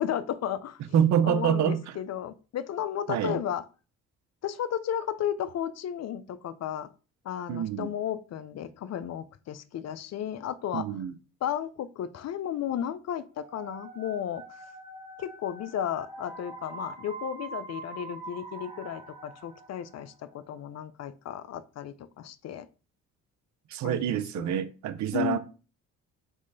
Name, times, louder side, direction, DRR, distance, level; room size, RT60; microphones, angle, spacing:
voice 1, 0.0-0.8 1.2-3.6 4.4-6.9 7.2-10.9 11.4-14.4 15.2-22.7 23.8-24.6 25.1-25.4, left 10 dB, 55° left, 0.5 m, -34 dB
voice 2, 0.9-1.8 3.1-3.4 7.5-7.9 10.7-11.2 23.7-25.4, right 9 dB, 60° right, 0.6 m, -26 dB
sound 1, 13.4-20.2, right 3 dB, 20° right, 1.6 m, -44 dB
3.7 x 3.1 x 3.9 m
supercardioid pair, 60°, 32 cm